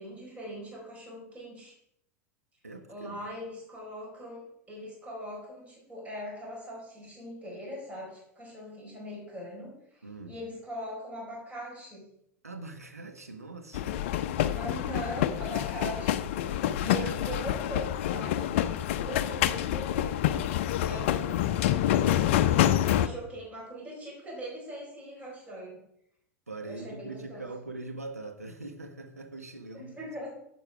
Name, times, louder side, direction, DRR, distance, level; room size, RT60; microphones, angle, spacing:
voice 1, 0.0-1.7 2.9-4.4 4.7-12.1 14.5-18.5 19.0-20.5 20.8-22.0 22.4-25.8 26.6-27.5 29.7-30.3, equal, 15° right, -3 dB, 4.6 m, -41 dB
voice 2, 2.6-3.2 10.0-10.4 12.4-14.0 16.8-17.4 18.7-19.0 26.5-30.1, right 2 dB, 80° right, 6 dB, 1.4 m, -42 dB
sound 1, 13.7-23.1, left 11 dB, 50° left, 0.6 m, -27 dB
11.5 x 7.7 x 4.9 m, 0.76 s
figure-of-eight pair, 85°, 8 cm